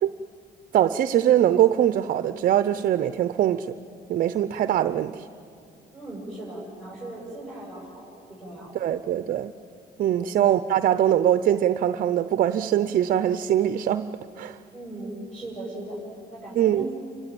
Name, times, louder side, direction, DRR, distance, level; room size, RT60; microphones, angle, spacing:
voice 1, 0.7-3.7 4.1-5.3 8.7-9.5 10.0-14.1 14.4-14.6 16.6-16.8, right 11 dB, 55° right, 12 dB, 0.7 m, -22 dB
voice 2, 5.9-8.8 10.1-10.4 14.7-16.0 16.3-16.9, right 2 dB, 5° left, -5 dB, 7.2 m, -38 dB
30.0 x 15.5 x 9.0 m, 2.5 s
cardioid pair, 110°, 17 cm